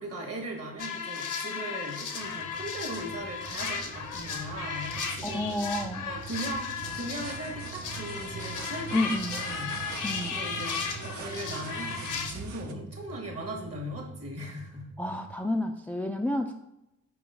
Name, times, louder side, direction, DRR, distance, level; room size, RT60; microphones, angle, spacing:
voice 1, 0.0-5.6 6.1-9.0 9.3-9.7 10.3-14.9, right 1 dB, 45° right, 1 dB, 1.6 m, -38 dB
sound 1, 0.8-12.3, left 6 dB, 70° left, 0.8 m, -35 dB
sound 2, 2.1-15.4, right 4 dB, 20° right, 0.7 m, -45 dB
voice 2, 5.2-6.1 8.9-9.4 10.0-10.4 15.0-16.5, left 1 dB, 5° left, 4 dB, 0.3 m, -30 dB
sound 3, 6.8-12.7, right 6 dB, 65° right, 0.6 m, -44 dB
4.8 x 3.1 x 3.5 m, 0.88 s
supercardioid pair, 50°, 32 cm